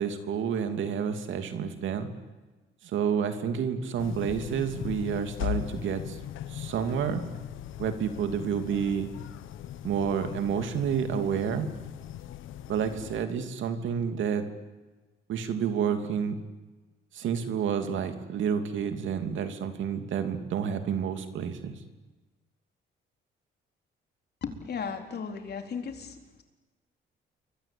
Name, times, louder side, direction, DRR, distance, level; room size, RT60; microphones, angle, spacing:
voice 1, 0.0-2.1 2.9-6.2 6.5-7.2 7.8-9.1 9.8-11.7 12.7-14.4 15.3-16.4 17.1-21.8, right 7 dB, 75° right, 8 dB, 2.9 m, -29 dB
sound 1, 4.0-13.2, left 12 dB, 90° left, 1.4 m, -39 dB
voice 2, 24.4-26.4, left 6 dB, 55° left, 5 dB, 4.1 m, -36 dB
29.0 x 23.5 x 8.8 m, 1.2 s
cardioid pair, 90°, 20 cm